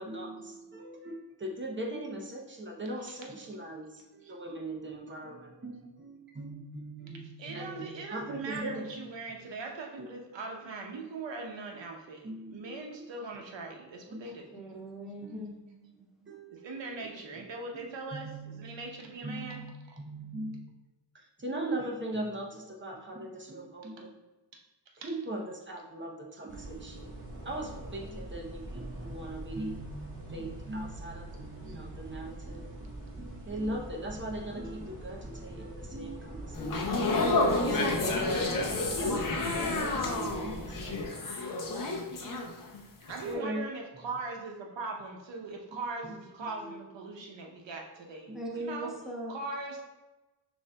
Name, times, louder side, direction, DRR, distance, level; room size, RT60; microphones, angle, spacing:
voice 1, 0.0-9.4 10.0-10.2 12.2-13.1 13.6-13.8 14.1-14.3 15.2-15.4 16.3-17.4 17.7-17.8 18.1-18.9 19.2-20.6 21.1-24.1 25.0-41.4 43.2-43.6 45.7-46.1 46.4-46.9 48.3-48.4, right 1 dB, 25° right, -1 dB, 0.6 m, -40 dB
voice 2, 7.4-14.5 15.6-20.0 24.5-24.6 25.0-25.1 31.7-31.8 43.1-49.0 49.3-49.8, right 3 dB, 85° right, 2 dB, 0.8 m, -41 dB
voice 3, 14.5-15.5 48.3-49.3, right 1 dB, ahead, -4 dB, 1.0 m, -39 dB
sound 1, 26.5-41.1, right 1 dB, 50° right, 1.1 m, -44 dB
sound 2, 36.5-42.8 43.1-43.3, left 2 dB, 50° left, 0.6 m, -30 dB
6.1 x 2.7 x 2.2 m, 1.1 s
wide cardioid pair, 100°, 43 cm